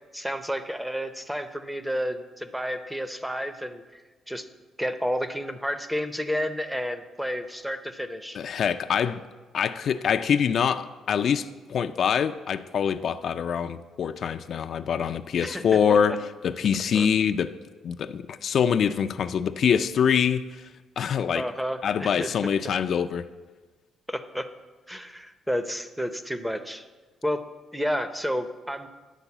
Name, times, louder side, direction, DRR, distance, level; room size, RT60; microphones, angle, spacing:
voice 1, 0.1-4.0 4.3-4.5 4.8-8.4 15.4-16.0 16.9-17.1 21.3-22.4 24.1-24.5 24.9-26.8 27.2-27.4 27.7-28.9, equal, 5° right, 10 dB, 0.6 m, -31 dB
voice 2, 8.3-9.2 9.5-17.5 17.8-20.7 21.0-21.5 21.8-23.3, left 7 dB, 60° left, 9 dB, 0.3 m, -25 dB
10.0 x 3.9 x 7.1 m, 1.3 s
cardioid pair, 90°, 0 cm